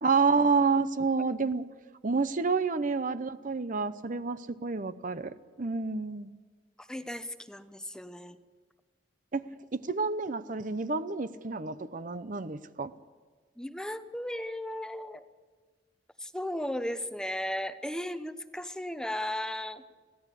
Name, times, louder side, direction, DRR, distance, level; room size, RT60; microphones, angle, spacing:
voice 1, 0.0-1.7 2.0-6.3 9.3-9.5 9.7-12.9, right 4 dB, 45° right, 13 dB, 0.7 m, -29 dB
voice 2, 6.8-8.4 13.6-15.2 16.2-19.8, left 1 dB, 5° left, 10 dB, 0.8 m, -36 dB
23.5 x 16.5 x 8.3 m, 1.5 s
head